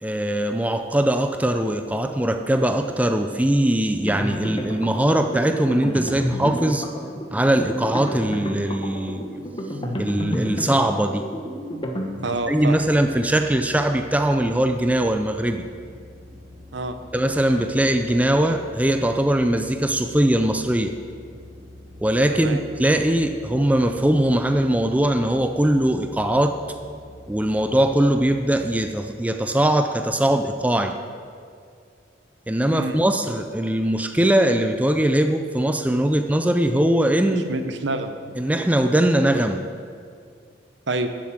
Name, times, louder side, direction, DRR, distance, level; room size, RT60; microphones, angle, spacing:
voice 1, 0.0-6.9 7.3-9.2 10.0-11.3 12.5-15.6 17.1-21.0 22.0-26.6 27.3-31.0 32.5-37.5 38.4-39.7, right 1 dB, 10° right, 6 dB, 0.4 m, -21 dB
sound 1, 1.5-6.5, left 3 dB, 50° left, 1.1 m, -48 dB
sound 2, 4.0-12.6, equal, 25° left, 1.1 m, -30 dB
voice 2, 12.2-12.8 16.7-17.0 22.3-22.6 32.7-33.0 37.3-38.3 40.9-41.1, right 2 dB, 70° right, 8 dB, 0.9 m, -28 dB
sound 3, 12.3-28.9, left 1 dB, 90° right, 3.9 m, -45 dB
12.5 x 7.6 x 7.4 m, 2.2 s
head